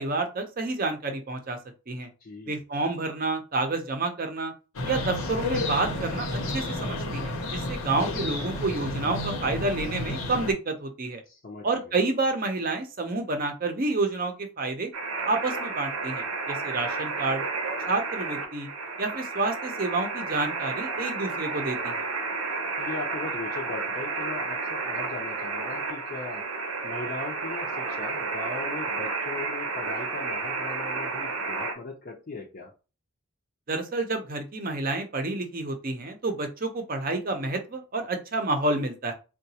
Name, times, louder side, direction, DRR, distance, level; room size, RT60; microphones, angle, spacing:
voice 1, 0.0-1.6 1.9-2.1 2.5-4.5 4.9-11.2 11.6-14.9 15.3-17.4 17.9-18.7 19.0-21.9 33.7-39.1, right 3 dB, 40° right, 6 dB, 0.6 m, -29 dB
voice 2, 2.2-2.6 11.3-12.0 22.8-32.7, left 3 dB, 40° left, 0 dB, 0.5 m, -39 dB
sound 1, 4.7-10.5, left 1 dB, 75° left, 0.8 m, -31 dB
sound 2, 14.9-31.7, right 4 dB, 90° right, 0.7 m, -31 dB
3.8 x 2.2 x 2.8 m, 0.32 s
head